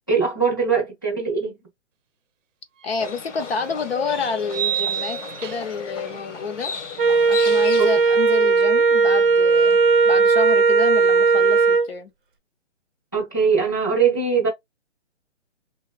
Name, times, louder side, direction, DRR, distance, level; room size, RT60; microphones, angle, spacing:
voice 1, 0.1-1.5 7.8-7.9 13.1-14.5, right 5 dB, 20° left, 0.4 m, -21 dB
voice 2, 2.8-6.7 7.3-9.8 10.1-12.1, left 5 dB, 55° left, 0.6 m, -29 dB
sound 1, 2.8-2.9 4.5-5.9, right 10 dB, 90° right, 0.6 m, -27 dB
Livestock farm animals working animals, 3.0-8.3, left 6 dB, 75° left, 1.0 m, -34 dB
Wind instrument woodwind instrument, 7.0-11.9, right 4 dB, 45° right, 0.6 m, -17 dB
2.9 x 2.6 x 2.2 m
hypercardioid pair, 170°, 37 cm